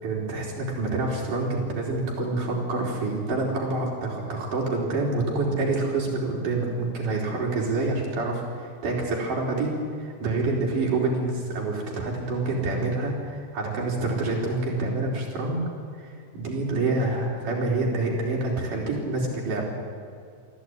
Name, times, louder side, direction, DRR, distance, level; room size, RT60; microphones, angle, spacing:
voice 1, 0.0-15.6 16.0-19.6, right 2 dB, 70° right, -2 dB, 5.9 m, -27 dB
23.0 x 15.0 x 9.8 m, 2.2 s
omnidirectional pair, 3.8 m